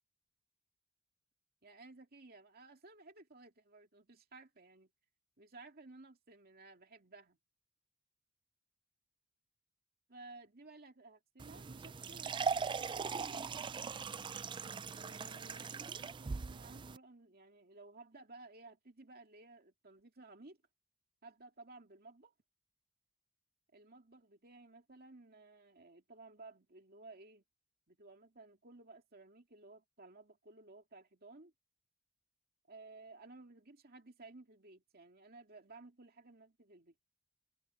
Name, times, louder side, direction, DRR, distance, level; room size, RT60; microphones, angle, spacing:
voice 1, 1.6-4.9 5.4-7.4 10.1-13.5 14.9-20.6 21.2-22.3 23.7-27.4 27.9-31.5 32.7-36.9, right 3 dB, 45° right, 2.4 m, -56 dB
sound 1, 11.4-17.0, right 5 dB, 20° right, 0.3 m, -40 dB
head